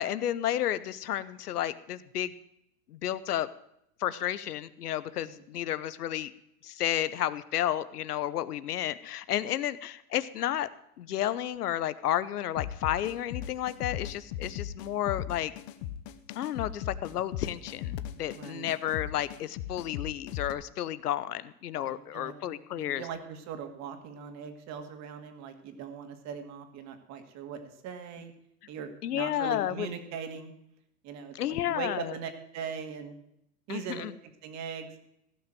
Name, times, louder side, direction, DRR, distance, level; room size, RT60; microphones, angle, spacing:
voice 1, 0.0-2.3 2.9-3.5 4.0-6.3 6.6-10.7 11.0-15.5 16.3-23.0 29.0-29.9 31.3-32.1 33.7-34.1, left 12 dB, 90° left, 16 dB, 0.9 m, -32 dB
voice 2, 5.1-5.4 18.3-18.7 21.8-28.3 28.7-30.5 31.0-33.2 33.7-35.0, right 7 dB, 35° right, 7 dB, 2.0 m, -40 dB
sound 1, 12.6-20.5, left 11 dB, 45° left, 1.0 m, -38 dB
15.5 x 6.2 x 7.5 m, 0.78 s
hypercardioid pair, 130°, 45 cm